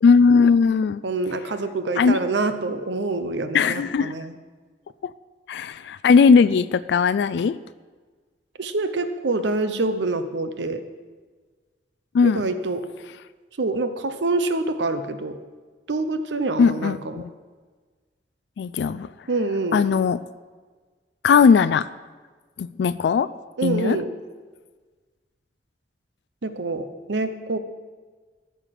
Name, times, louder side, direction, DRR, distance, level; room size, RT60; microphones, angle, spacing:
voice 1, 0.0-1.0 2.0-2.2 3.5-4.1 5.5-7.6 12.1-12.4 16.6-17.0 18.6-19.1 19.7-20.2 21.2-21.8 22.6-23.3 23.6-24.0, left 5 dB, 75° left, 13 dB, 0.3 m, -18 dB
voice 2, 1.0-4.3 8.6-10.8 12.2-12.9 13.6-15.4 15.9-17.2 19.3-19.8 23.6-24.1 26.4-27.6, right 2 dB, 85° right, 10 dB, 0.7 m, -26 dB
14.0 x 6.6 x 5.9 m, 1.4 s
head